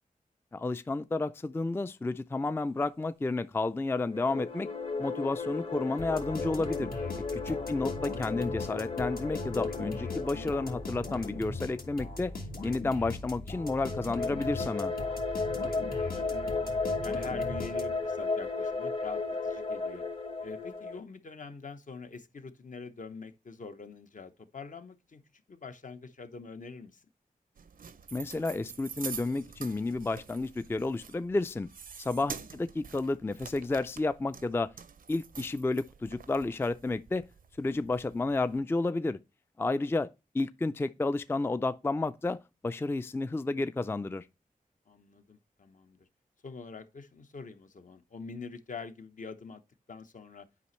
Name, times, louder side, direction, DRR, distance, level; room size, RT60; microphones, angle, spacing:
voice 1, 0.5-4.7 5.0-6.9 7.3-12.3 12.6-14.9 28.1-31.7 32.0-34.7 35.1-37.3 37.6-39.2 39.6-40.1 40.3-44.3, left 2 dB, 15° left, 0.3 m, -31 dB
sound 1, 4.0-12.6 13.6-21.0, left 3 dB, 40° left, 0.9 m, -35 dB
sound 2, 6.0-18.2, left 2 dB, 75° left, 1.6 m, -40 dB
voice 2, 15.4-16.7 17.0-20.1 20.4-27.1 32.3-32.5 44.9-46.1 46.4-49.6 49.9-50.5, left 4 dB, 60° left, 0.8 m, -45 dB
sound 3, 27.6-38.6, right 6 dB, 70° right, 0.5 m, -47 dB
8.3 x 5.1 x 3.1 m
cardioid pair, 60°, 15 cm